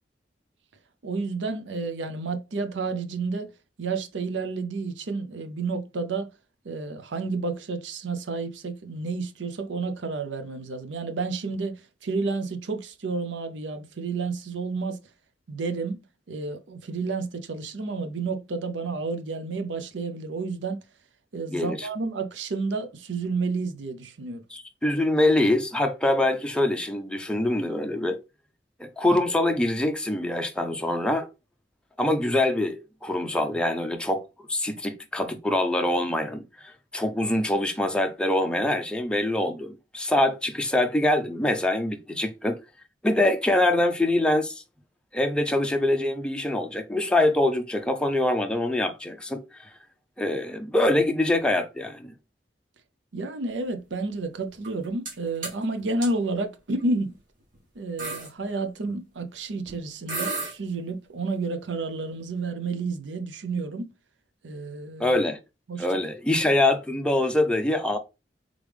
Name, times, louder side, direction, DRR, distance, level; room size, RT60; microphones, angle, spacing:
voice 1, 1.0-3.5 3.8-6.3 6.6-15.0 15.5-16.0 16.3-20.8 21.3-24.4 53.1-57.2 57.8-63.9 64.4-65.2 65.7-66.0, right 3 dB, 80° right, 0.6 m, -30 dB
voice 2, 21.5-21.9 24.5-28.2 28.8-31.3 32.0-34.2 34.5-42.6 43.0-44.6 45.1-49.7 50.2-52.1 65.0-65.4 65.8-68.0, left 1 dB, 5° left, 0.5 m, -24 dB
sound 1, 54.6-55.1 55.4-55.6 56.0-56.1 57.0-57.2 57.5-57.6 58.0-58.3 59.7-59.8 60.1-60.5, right 3 dB, 50° right, 1.6 m, -32 dB
3.6 x 3.4 x 3.3 m
head